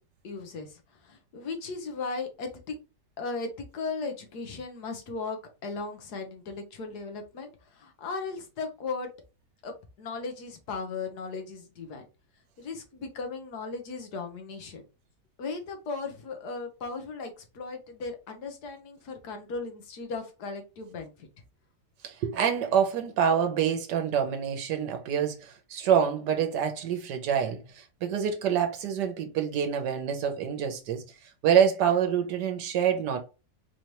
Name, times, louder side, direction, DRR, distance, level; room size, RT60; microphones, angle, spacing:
voice 1, 0.2-2.7 3.2-9.1 9.6-12.0 12.6-14.8 15.4-21.3, left 4 dB, 70° left, 1.5 m, -37 dB
voice 2, 22.0-31.0 31.4-33.2, right 8 dB, 85° right, 1.3 m, -26 dB
4.1 x 3.2 x 2.9 m
omnidirectional pair, 1.8 m